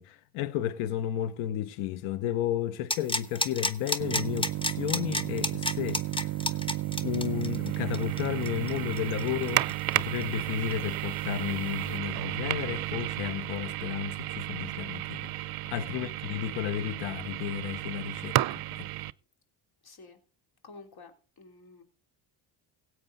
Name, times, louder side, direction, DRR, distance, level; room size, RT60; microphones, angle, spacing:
voice 1, 0.0-6.0 6.4-6.5 7.0-18.9, left 11 dB, 85° left, 0.9 m, -33 dB
sound 1, 2.9-10.4 10.7-10.8, left 1 dB, 10° left, 1.0 m, -31 dB
sound 2, 4.0-19.1, right 16 dB, 50° right, 0.5 m, -33 dB
voice 2, 19.8-20.2 20.6-21.1 21.4-21.8, left 3 dB, 50° left, 3.4 m, -50 dB
16.5 x 8.4 x 3.9 m
cardioid pair, 85°, 47 cm